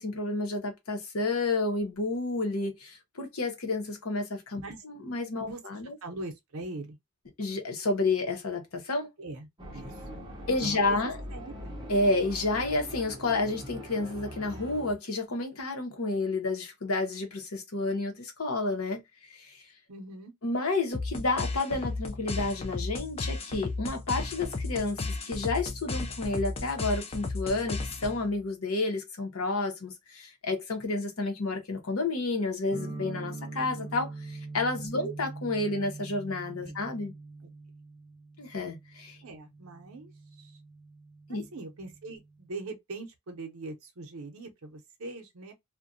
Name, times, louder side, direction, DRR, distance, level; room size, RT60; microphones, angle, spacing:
voice 1, 0.0-6.0 7.4-9.1 10.5-11.2 11.9-19.0 19.3-19.6 20.4-37.1 38.4-39.2 41.3-41.5, left 3 dB, 75° left, 0.9 m, -30 dB
voice 2, 6.0-7.0 9.2-10.2 10.6-11.0 11.3-11.8 19.9-20.3 34.9-35.1 36.6-36.8 37.4-37.5 39.2-40.1 40.4-40.5 41.3-45.5, right 2 dB, 70° right, 0.7 m, -42 dB
sound 1, 9.6-14.9, equal, 20° right, 0.7 m, -42 dB
sound 2, 20.9-28.4, left 3 dB, 25° left, 0.4 m, -34 dB
sound 3, 32.7-42.5, right 3 dB, 50° left, 1.3 m, -43 dB
2.4 x 2.2 x 2.5 m
head